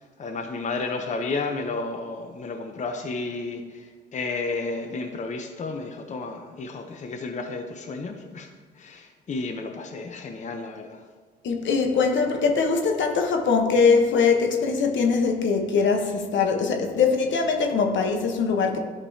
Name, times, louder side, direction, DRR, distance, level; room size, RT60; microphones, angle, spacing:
voice 1, 0.2-8.5 8.8-11.0, left 3 dB, 35° left, 5 dB, 0.7 m, -32 dB
voice 2, 11.4-18.8, left 5 dB, 70° left, 3 dB, 1.0 m, -22 dB
11.5 x 5.3 x 2.8 m, 1.5 s
cardioid pair, 90°, 20 cm